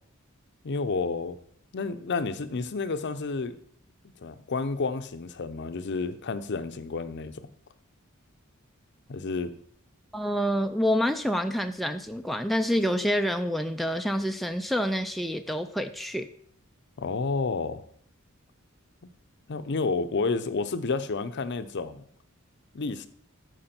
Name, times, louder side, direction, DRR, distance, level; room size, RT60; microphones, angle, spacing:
voice 1, 0.6-1.4 1.7-3.5 4.2-7.5 9.1-9.5 17.0-17.8 19.0-19.1 19.5-22.0 22.7-23.1, left 4 dB, 55° left, 12 dB, 0.6 m, -30 dB
voice 2, 10.1-16.3, equal, ahead, 6 dB, 0.3 m, -27 dB
13.0 x 4.9 x 4.4 m, 0.63 s
head